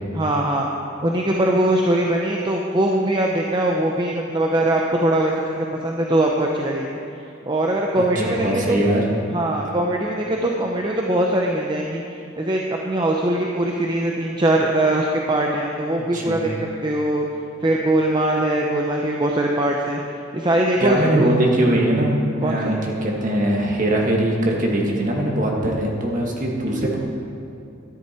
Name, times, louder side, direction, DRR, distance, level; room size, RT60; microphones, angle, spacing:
voice 1, 0.1-0.7 1.0-7.0 7.5-8.8 9.3-12.0 12.4-16.5 16.8-17.3 17.6-20.0 20.3-21.3 22.4-22.7, right 1 dB, 25° right, 0 dB, 0.7 m, -21 dB
voice 2, 8.0-9.1 16.0-16.4 20.8-27.0, right 1 dB, 40° right, -1 dB, 1.9 m, -21 dB
13.0 x 10.5 x 4.4 m, 2.7 s
head